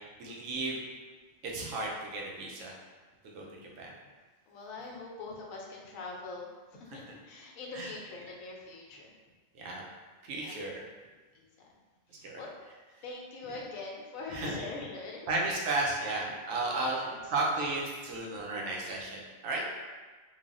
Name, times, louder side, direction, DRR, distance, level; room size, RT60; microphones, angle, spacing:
voice 1, 0.2-0.8 1.4-2.7 3.2-3.9 6.9-7.0 7.7-7.9 9.6-9.8 10.2-10.8 12.2-12.4 14.3-14.6 15.3-17.0 17.3-19.6, right 2 dB, 75° right, -2 dB, 1.0 m, -34 dB
voice 2, 3.3-3.8 4.5-9.1 10.3-10.5 11.3-11.5 12.1-12.6 13.0-15.4 16.5-17.2 18.5-19.0, left 3 dB, 85° left, -1 dB, 1.0 m, -43 dB
3.2 x 2.2 x 2.4 m, 1.3 s
omnidirectional pair, 1.4 m